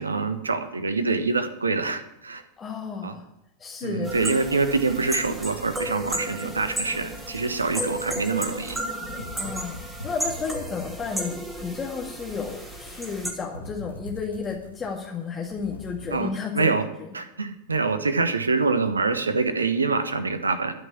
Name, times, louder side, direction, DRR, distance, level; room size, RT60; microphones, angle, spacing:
voice 1, 0.0-2.4 3.0-3.1 3.8-8.8 16.1-16.3 16.5-16.9 17.1-20.7, right 4 dB, 75° right, 9 dB, 1.2 m, -25 dB
voice 2, 2.6-3.2 3.6-4.1 9.4-9.8 10.0-16.7 17.0-17.1, left 5 dB, 20° left, 0 dB, 1.9 m, -32 dB
sound 1, 4.0-13.3, right 1 dB, 5° right, 2.9 m, -33 dB
sound 2, 7.9-16.2, left 2 dB, 80° left, 1.5 m, -43 dB
12.5 x 6.0 x 9.5 m, 0.83 s
figure-of-eight pair, 90°, 0 cm